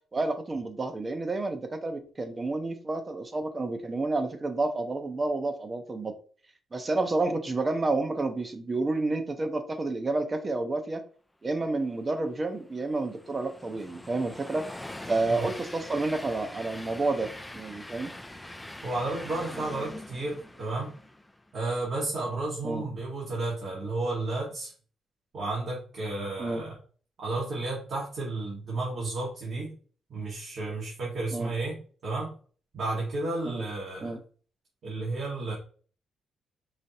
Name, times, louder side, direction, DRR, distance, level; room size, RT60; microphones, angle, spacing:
voice 1, 0.1-6.1 6.7-11.0 11.4-14.7 15.1-18.1 22.6-22.8 26.4-26.6 31.3-31.5 33.4-33.6 34.0-34.2, right 2 dB, 30° right, 7 dB, 0.9 m, -30 dB
Train, 12.1-21.5, left 1 dB, 10° left, 0.5 m, -43 dB
voice 2, 18.8-20.9 21.5-24.7 25.3-26.8 27.2-29.7 30.1-32.3 32.7-34.2 34.8-35.5, right 2 dB, 60° right, -5 dB, 1.8 m, -32 dB
5.0 x 3.7 x 2.8 m, 0.41 s
cardioid pair, 95°, 0 cm